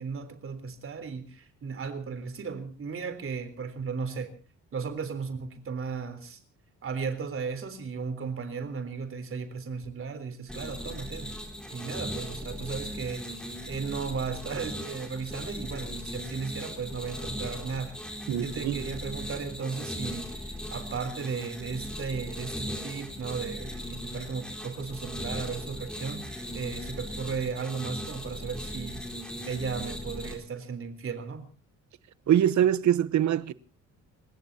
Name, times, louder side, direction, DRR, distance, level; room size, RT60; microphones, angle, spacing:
voice 1, 0.0-4.3 4.7-6.4 6.8-11.3 11.7-13.2 13.7-18.0 18.4-29.0 29.5-31.5, right 5 dB, 45° right, 3.6 m, -35 dB
sound 1, 10.5-30.3, equal, 5° left, 4.2 m, -38 dB
voice 2, 18.3-18.8 32.3-33.5, right 10 dB, 70° right, 1.0 m, -23 dB
29.5 x 17.0 x 2.8 m
cardioid pair, 145°, 30 cm